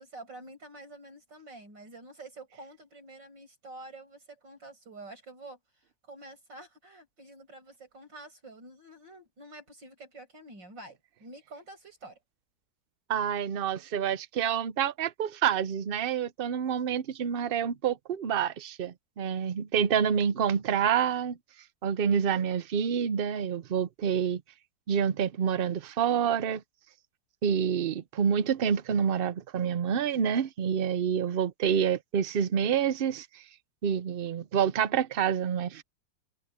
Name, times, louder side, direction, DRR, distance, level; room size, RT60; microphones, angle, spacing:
voice 1, 0.0-12.2, right 2 dB, 85° right, 8.4 m, -48 dB
voice 2, 13.1-21.4 21.8-24.4 24.9-26.6 27.4-33.4 33.8-35.8, right 8 dB, 60° right, 0.6 m, -28 dB
omnidirectional pair, 1.9 m